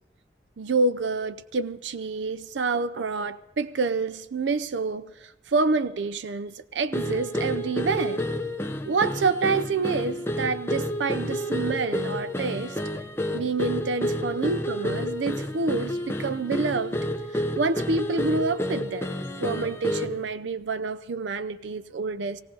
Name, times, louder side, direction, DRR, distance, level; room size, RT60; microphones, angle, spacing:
voice 1, 0.6-8.3 8.9-12.8 13.3-17.0 17.3-19.1 19.4-22.4, right 4 dB, 90° right, 0.5 m, -28 dB
sound 1, 6.9-20.2, left 1 dB, 15° left, 0.8 m, -30 dB
17.5 x 17.5 x 3.9 m
head